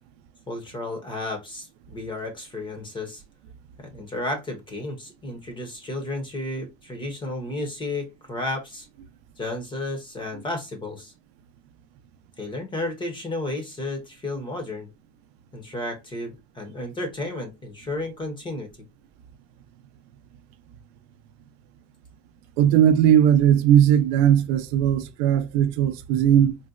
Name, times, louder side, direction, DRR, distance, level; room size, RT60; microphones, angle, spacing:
voice 1, 0.5-3.2 3.8-8.9 9.4-11.1 12.4-14.9 15.5-18.7, left 2 dB, 15° left, 0.6 m, -32 dB
voice 2, 22.6-26.6, right 10 dB, 65° right, 0.5 m, -18 dB
3.9 x 2.0 x 2.3 m
cardioid pair, 160°, 36 cm